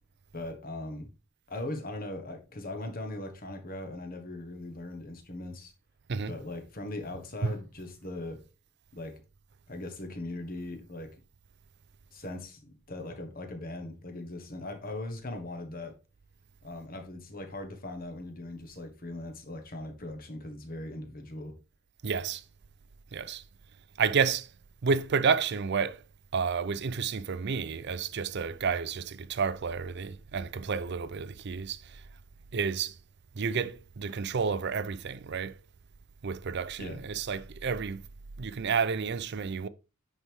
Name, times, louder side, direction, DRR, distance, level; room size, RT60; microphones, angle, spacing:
voice 1, 0.3-1.1 1.5-5.7 6.3-8.4 8.9-9.2 9.7-11.1 12.1-15.9 16.6-21.5 36.8-37.0, left 2 dB, 40° left, 1.4 m, -39 dB
voice 2, 22.0-22.4 23.1-23.4 24.0-24.5 24.8-26.0 26.3-31.8 32.5-32.9 33.4-35.6 36.2-38.0 38.4-39.7, right 5 dB, 50° right, 0.5 m, -30 dB
9.7 x 4.7 x 3.5 m
head